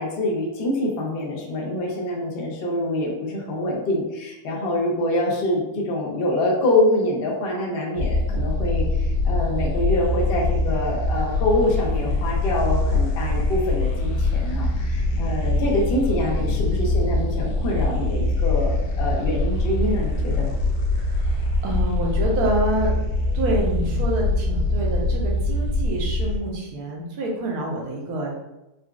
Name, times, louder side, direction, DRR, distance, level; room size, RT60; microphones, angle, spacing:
voice 1, 0.0-20.5, left 1 dB, 60° left, -2 dB, 0.6 m, -25 dB
sound 1, 8.0-26.4, left 2 dB, 90° left, 1.2 m, -23 dB
voice 2, 21.0-28.3, right 1 dB, 70° right, -1 dB, 1.2 m, -27 dB
3.8 x 2.3 x 2.3 m, 0.95 s
omnidirectional pair, 1.7 m